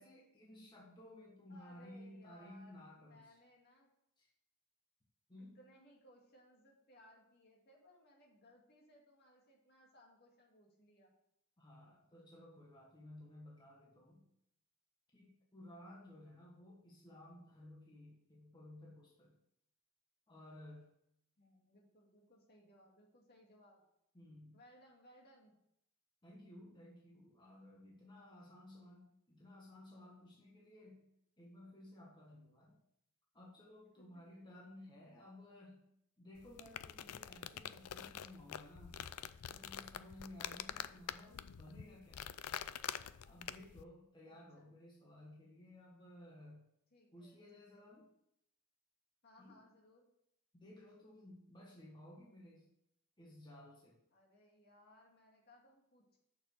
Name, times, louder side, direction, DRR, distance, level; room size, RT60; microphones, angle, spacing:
voice 1, 0.0-3.4 4.2-4.3 5.3-5.6 11.6-14.3 15.1-19.3 20.3-20.8 24.1-24.6 26.2-31.1 31.4-32.8 33.3-35.9 36.2-38.9 39.5-42.2 43.2-46.6 47.1-48.1 49.4-49.6 50.5-52.7 53.2-54.0, left 1 dB, 20° left, -4 dB, 1.6 m, -56 dB
voice 2, 1.5-3.9 5.4-11.1 21.4-23.8 24.5-25.5 34.0-34.4 44.3-44.7 46.9-47.9 49.2-50.1 54.1-56.2, left 1 dB, 45° left, -1 dB, 2.2 m, -65 dB
sound 1, 36.4-43.8, left 10 dB, 90° left, 0.4 m, -46 dB
6.8 x 6.4 x 6.7 m, 0.77 s
head